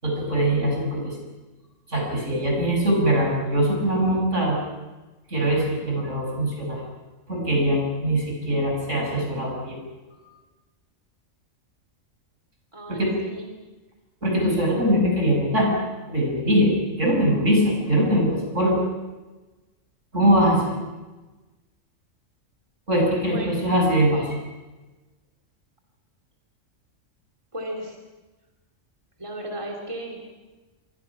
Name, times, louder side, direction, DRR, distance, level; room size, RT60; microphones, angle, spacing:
voice 1, 0.0-1.2 1.9-4.6 5.3-6.8 7.3-9.8 10.1-10.2 12.9-13.1 14.2-15.7 16.1-18.8 20.1-20.6 22.9-24.4, equal, 70° right, 0 dB, 7.0 m, -22 dB
voice 2, 12.7-13.5 23.2-23.6 27.5-28.0 29.2-30.2, right 1 dB, 25° right, 0 dB, 3.0 m, -35 dB
27.5 x 23.5 x 6.0 m, 1.2 s
omnidirectional pair, 1.3 m